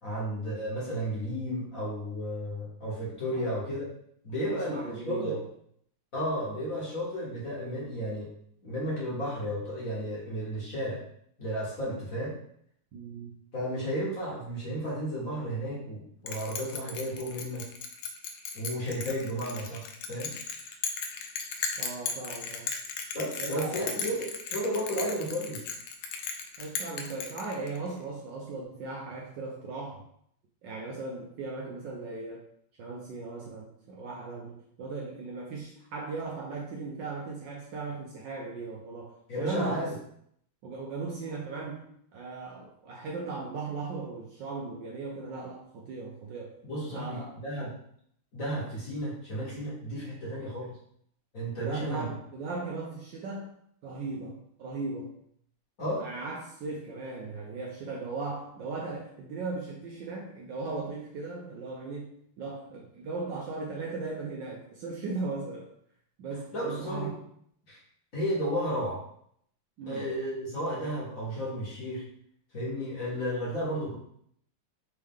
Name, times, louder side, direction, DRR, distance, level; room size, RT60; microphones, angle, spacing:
voice 1, 0.0-3.9 4.2-5.4 6.1-8.3 8.6-11.0 11.4-12.3 13.5-17.7 18.5-20.3 23.1-25.6 39.3-39.9 46.6-47.7 48.3-50.7 51.3-52.0 55.8-56.1 66.5-67.1 67.7-67.8 68.1-69.0 69.9-72.0 72.5-73.9, equal, 45° left, -6 dB, 1.5 m, -33 dB
voice 2, 4.4-5.5 12.9-13.4 21.8-22.7 23.4-24.1 26.6-30.0 30.6-32.4 32.8-39.9 40.6-41.9 42.1-46.6 46.9-47.4 51.6-53.5 53.8-55.2 56.0-65.7 66.2-67.2 69.8-70.1, right 3 dB, 70° right, -1 dB, 1.1 m, -37 dB
Bell, 16.3-27.9, left 6 dB, 85° left, 1.5 m, -36 dB
4.3 x 3.2 x 3.5 m, 0.68 s
omnidirectional pair, 2.4 m